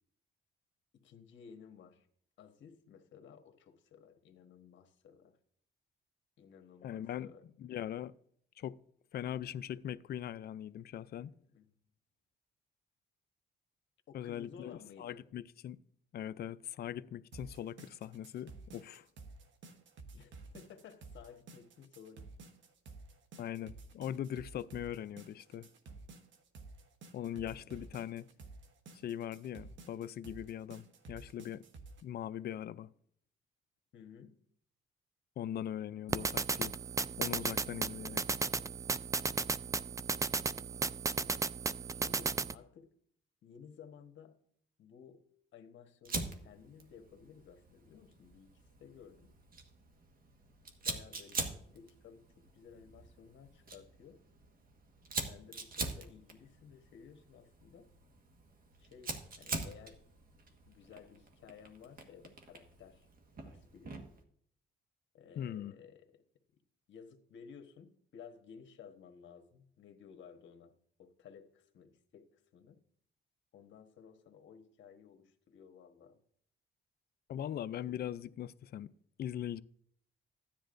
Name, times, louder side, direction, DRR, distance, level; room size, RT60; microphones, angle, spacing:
voice 1, 1.0-2.1 2.4-5.4 6.4-7.4 11.2-11.7 14.1-15.2 20.1-22.3 27.4-28.0 33.9-34.4 40.7-41.4 41.8-42.9 43.4-44.4 44.8-45.2 45.5-48.5 48.8-49.3 50.8-54.2 55.3-57.9 58.8-60.0 60.7-63.1 63.4-64.0 65.1-66.2 66.9-70.7 71.0-72.8 73.5-76.2 77.9-78.0, left 7 dB, 70° left, 1.3 m, -56 dB
voice 2, 6.8-7.3 7.6-8.1 8.6-8.8 9.1-11.3 14.1-15.8 16.1-19.1 23.4-25.7 27.1-28.3 29.0-31.6 32.0-32.9 35.4-36.8 37.2-38.2 65.4-65.7 77.3-78.9 79.2-79.6, left 10 dB, 50° left, 0.4 m, -41 dB
sound 1, 17.3-32.0, right 3 dB, 70° right, 1.2 m, -53 dB
sound 2, 36.1-42.5, right 4 dB, 15° right, 0.3 m, -35 dB
Fire, 46.0-64.2, right 3 dB, 45° right, 1.5 m, -44 dB
15.0 x 10.0 x 2.6 m
cardioid pair, 90°, 20 cm